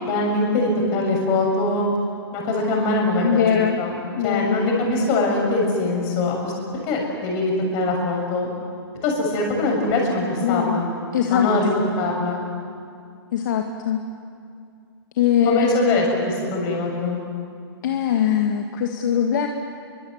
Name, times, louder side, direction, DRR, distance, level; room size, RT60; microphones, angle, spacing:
voice 1, 0.0-1.8 2.3-6.5 6.9-8.5 9.0-10.9 11.3-11.7 12.0-12.5 15.4-17.2, left 2 dB, 25° left, 0 dB, 6.9 m, -22 dB
voice 2, 3.2-3.8 4.2-4.6 10.4-10.8 11.1-11.6 13.3-14.0 15.2-15.7 17.8-19.5, left 9 dB, 45° left, 3 dB, 1.9 m, -21 dB
29.5 x 24.0 x 8.1 m, 2.4 s
hypercardioid pair, 165°, 14 cm